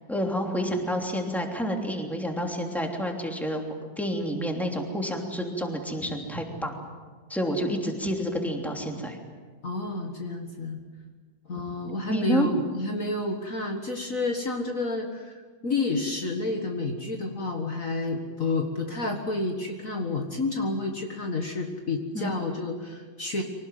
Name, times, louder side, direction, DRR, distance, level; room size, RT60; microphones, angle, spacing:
voice 1, 0.1-3.6 4.0-6.8 7.3-9.2 12.1-12.5 22.1-22.3, equal, ahead, 2 dB, 3.0 m, -29 dB
voice 2, 9.6-10.8 11.5-23.4, left 2 dB, 50° left, 3 dB, 2.0 m, -30 dB
24.5 x 19.0 x 9.4 m, 1.5 s
omnidirectional pair, 1.9 m